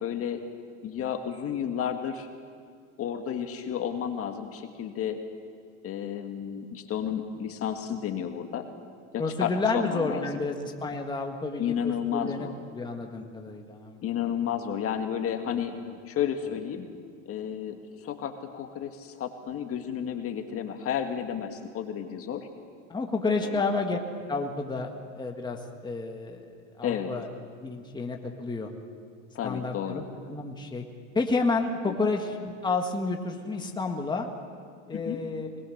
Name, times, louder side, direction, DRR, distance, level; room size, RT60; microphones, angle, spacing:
voice 1, 0.0-0.4 0.8-2.3 3.0-5.2 5.8-8.6 9.1-10.2 11.6-12.5 14.0-15.8 16.1-16.9 17.3-22.5 23.4-23.6 26.8-27.1 29.3-30.0 31.9-32.0 34.9-35.2, left 9 dB, 35° left, 5 dB, 1.8 m, -32 dB
voice 2, 9.2-12.5 12.7-14.0 15.5-15.6 15.9-16.0 16.5-16.6 22.9-24.0 24.3-26.5 26.8-27.3 27.6-28.7 29.4-30.8 31.1-34.3 34.9-35.5, left 3 dB, 10° left, 2 dB, 1.7 m, -30 dB
21.5 x 21.0 x 6.5 m, 2.1 s
supercardioid pair, 115°, 38 cm